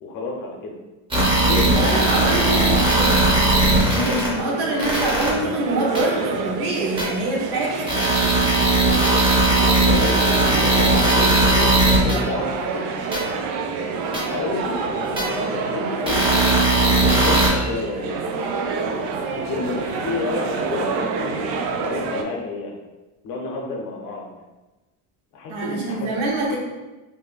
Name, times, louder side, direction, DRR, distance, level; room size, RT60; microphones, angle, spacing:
voice 1, 0.0-0.8 1.5-2.5 9.7-13.0 14.1-16.4 17.2-18.2 19.3-21.4 21.7-22.7 23.2-24.3 25.3-26.1, left 3 dB, 50° left, 0 dB, 0.6 m, -30 dB
sound 1, 1.1-4.3 4.8-5.3 6.0-6.1 7.0-7.1 7.9-12.2 13.1-13.2 14.1-14.2 15.2-15.3 16.1-17.5, right 2 dB, 10° right, 0.6 m, -18 dB
voice 2, 1.6-3.3 3.6-8.0 25.5-26.6, right 1 dB, 65° right, -2 dB, 0.9 m, -25 dB
sound 2, 3.1-22.2, right 4 dB, 90° right, 0.5 m, -28 dB
2.7 x 2.5 x 3.8 m, 1.1 s
cardioid pair, 170°, 42 cm